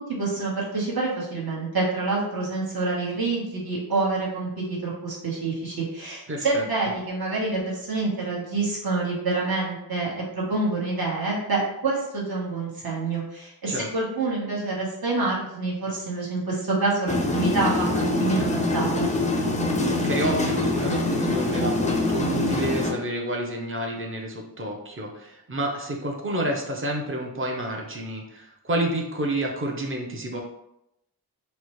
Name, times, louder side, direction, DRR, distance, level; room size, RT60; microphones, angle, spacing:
voice 1, 0.0-19.1, right 3 dB, 65° right, -5 dB, 1.2 m, -27 dB
voice 2, 6.3-6.6 13.7-13.9 19.9-30.4, right 1 dB, 30° right, 1 dB, 0.6 m, -29 dB
sound 1, 17.1-22.9, left 2 dB, 20° left, 0.4 m, -24 dB
4.2 x 2.1 x 3.0 m, 0.83 s
wide cardioid pair, 115°, 40 cm